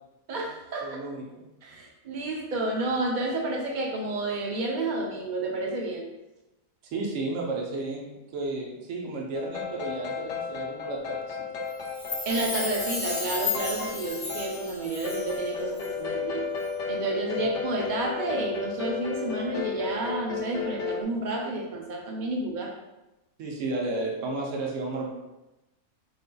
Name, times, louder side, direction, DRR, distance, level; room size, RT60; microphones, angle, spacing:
voice 1, 0.3-1.0 1.6-6.1 12.3-16.5 16.9-22.7, right 2 dB, 75° right, 0 dB, 0.4 m, -30 dB
voice 2, 0.8-1.4 6.8-11.4 23.4-25.1, right 2 dB, 60° right, -2 dB, 1.1 m, -33 dB
sound 1, 9.3-21.0, left 5 dB, 60° left, 0.9 m, -34 dB
Chime, 11.8-15.5 15.8-15.9, left 4 dB, 10° left, 0.9 m, -33 dB
5.0 x 3.9 x 2.3 m, 0.99 s
omnidirectional pair, 1.7 m